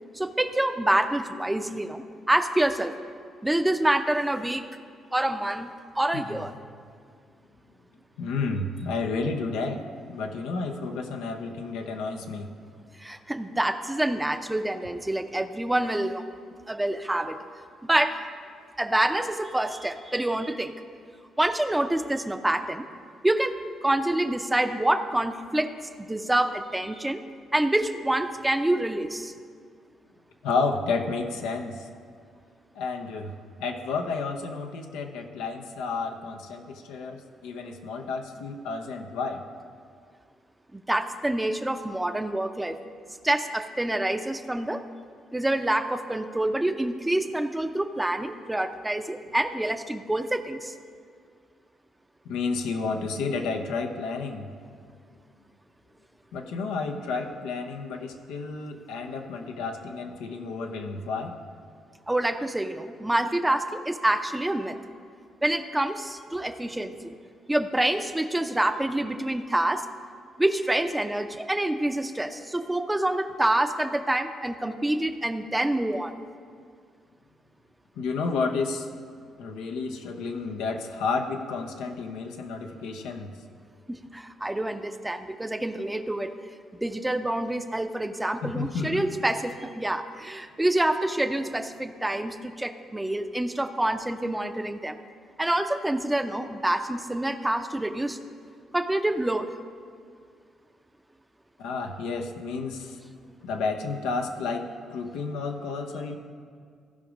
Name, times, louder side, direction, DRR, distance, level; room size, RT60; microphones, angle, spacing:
voice 1, 0.1-2.9 3.4-4.7 5.1-5.7 5.9-6.5 13.0-16.3 16.7-17.4 17.8-18.2 18.8-20.8 21.4-22.9 23.2-23.6 23.8-25.7 26.0-27.2 27.5-29.3 40.7-42.8 43.2-44.8 45.3-50.7 62.1-64.8 65.4-66.9 67.5-69.9 70.4-76.1 83.9-86.4 86.7-95.0 95.4-98.2 98.7-99.5, right 1 dB, 10° right, 8 dB, 0.6 m, -27 dB
voice 2, 6.1-6.5 8.2-9.8 10.1-12.5 30.4-31.9 32.7-39.4 52.2-54.5 56.3-61.4 78.0-78.9 79.4-83.4 88.4-89.0 101.6-103.0 103.4-106.2, left 4 dB, 85° left, 4 dB, 0.8 m, -31 dB
15.5 x 5.2 x 5.0 m, 2.1 s
supercardioid pair, 65°, 0 cm